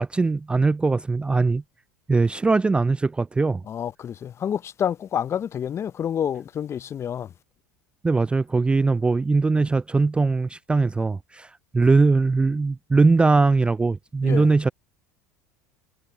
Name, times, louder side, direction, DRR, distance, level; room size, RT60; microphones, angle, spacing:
voice 1, 0.0-1.6 2.1-3.6 8.0-14.7, right 3 dB, 15° right, 0.3 m, -21 dB
voice 2, 3.7-7.3 14.2-14.5, left 9 dB, 35° left, 0.6 m, -28 dB
hypercardioid pair, 85°, 8 cm